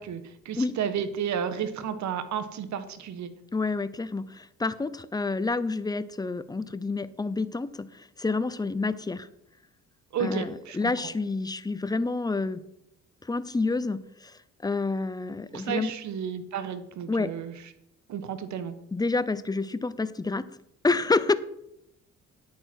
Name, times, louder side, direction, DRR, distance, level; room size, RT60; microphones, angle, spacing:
voice 1, 0.0-3.3 10.1-10.9 15.5-17.5 18.1-18.7, right 8 dB, 70° right, 11 dB, 1.3 m, -32 dB
voice 2, 3.5-9.3 10.2-12.6 13.2-15.9 17.1-17.3 18.9-20.5 20.8-21.3, left 3 dB, 15° left, 14 dB, 0.6 m, -28 dB
10.0 x 8.6 x 4.5 m, 0.80 s
cardioid pair, 90°, 30 cm